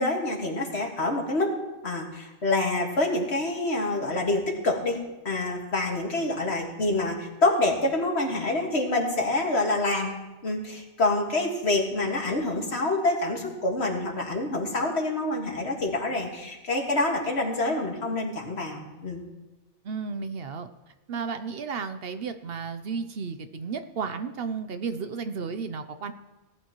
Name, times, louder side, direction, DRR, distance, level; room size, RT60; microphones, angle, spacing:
voice 1, 0.0-1.6 1.8-10.1 10.4-19.2, left 2 dB, 65° left, 1 dB, 2.0 m, -27 dB
voice 2, 19.8-20.7 21.1-26.1, right 5 dB, 60° right, 9 dB, 0.8 m, -33 dB
19.0 x 11.0 x 3.0 m, 1.1 s
omnidirectional pair, 1.2 m